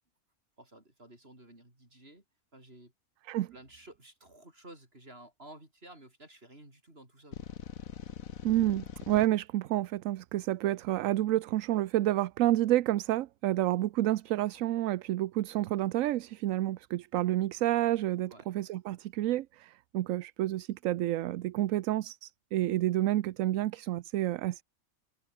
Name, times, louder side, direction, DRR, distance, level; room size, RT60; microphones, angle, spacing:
voice 1, 0.6-2.2 2.5-2.9 3.5-7.5 18.3-18.5 22.6-22.8, right 1 dB, 45° right, 7.3 m, -53 dB
sound 1, 7.3-9.3, left 8 dB, 70° left, 1.7 m, -42 dB
voice 2, 8.4-24.6, right 14 dB, 70° right, 1.0 m, -29 dB
omnidirectional pair, 1.5 m